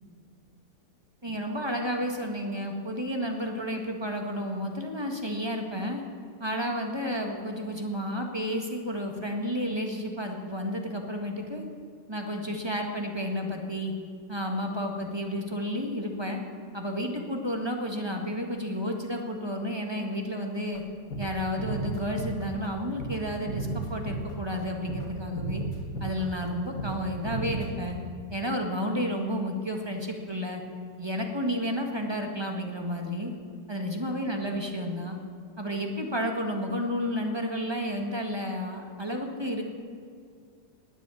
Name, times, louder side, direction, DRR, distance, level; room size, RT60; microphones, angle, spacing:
voice 1, 1.2-6.0 6.4-11.6 12.1-13.9 14.3-16.4 16.7-20.8 21.2-25.6 26.0-28.0 28.3-30.6 31.0-33.3 33.7-35.2 35.6-39.6, equal, 15° right, 2 dB, 1.5 m, -31 dB
sound 1, 20.7-20.8 21.1-21.3 21.6-22.7 23.0-23.2 23.5-24.6 24.9-25.1 25.3-26.5 26.8-27.0 27.2-27.9, right 2 dB, 50° left, 2.2 m, -34 dB
19.5 x 8.3 x 8.4 m, 2.2 s
omnidirectional pair, 1.9 m